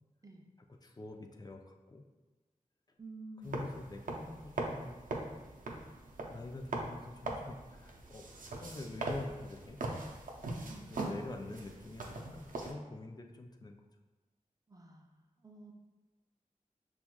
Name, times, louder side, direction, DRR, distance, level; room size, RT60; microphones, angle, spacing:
voice 1, 0.8-2.0 3.4-5.0 5.3-5.8 6.2-8.3 8.6-9.8 10.7-13.8, left 2 dB, 30° left, 3 dB, 0.4 m, -46 dB
voice 2, 3.0-3.7 10.7-11.0 14.7-15.2 15.4-15.7, right 2 dB, 25° right, 2 dB, 0.5 m, -50 dB
sound 1, 3.4-12.7, right 2 dB, 85° right, 0.5 m, -41 dB
5.7 x 2.3 x 2.3 m, 1.2 s
wide cardioid pair, 60°, 14 cm